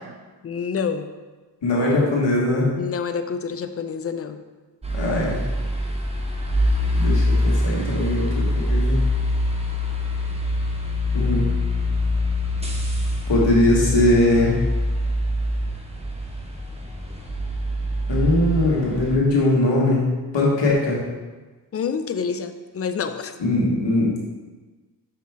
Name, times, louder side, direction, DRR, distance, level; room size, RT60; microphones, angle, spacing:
voice 1, 0.4-1.1 2.8-4.4 21.7-23.3, left 6 dB, 35° left, 9 dB, 0.5 m, -27 dB
voice 2, 1.6-2.7 4.9-5.4 6.9-9.0 11.1-11.5 13.3-14.6 18.1-20.1 20.3-21.0 23.4-24.2, left 1 dB, 75° left, -4 dB, 1.7 m, -20 dB
sound 1, 4.8-19.2, left 1 dB, 15° right, 1.1 m, -24 dB
5.7 x 4.8 x 3.5 m, 1.3 s
cardioid pair, 55°, 44 cm